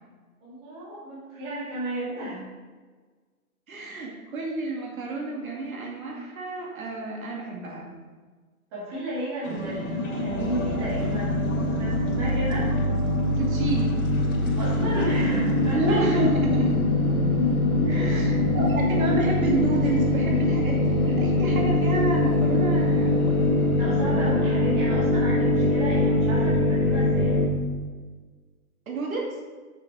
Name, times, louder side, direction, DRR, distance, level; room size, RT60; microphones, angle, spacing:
voice 1, 0.4-2.5 8.7-12.7 14.6-16.0 17.9-18.2 23.8-27.4, right 1 dB, 20° right, -8 dB, 2.2 m, -33 dB
voice 2, 3.7-8.0 13.3-14.0 15.7-16.8 17.9-23.4 28.9-29.4, right 2 dB, 70° right, -2 dB, 2.1 m, -30 dB
sound 1, 9.4-27.5, left 1 dB, 85° left, 2.6 m, -23 dB
7.2 x 6.3 x 4.7 m, 1.4 s
hypercardioid pair, 175°, 43 cm